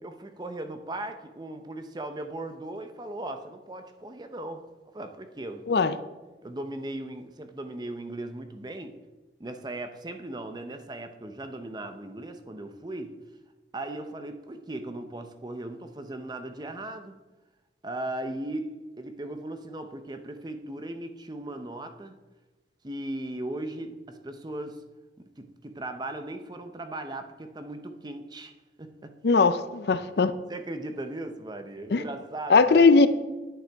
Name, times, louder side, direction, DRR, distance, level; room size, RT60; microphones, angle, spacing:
voice 1, 0.0-5.7 6.4-9.0 9.4-13.2 13.7-17.2 17.8-22.2 22.8-24.8 25.2-28.5 28.8-29.2 30.5-32.9, right 1 dB, 25° right, 0.6 m, -38 dB
voice 2, 29.2-30.3 31.9-32.0 32.5-33.1, left 4 dB, 65° left, 0.5 m, -19 dB
9.9 x 8.9 x 3.5 m
head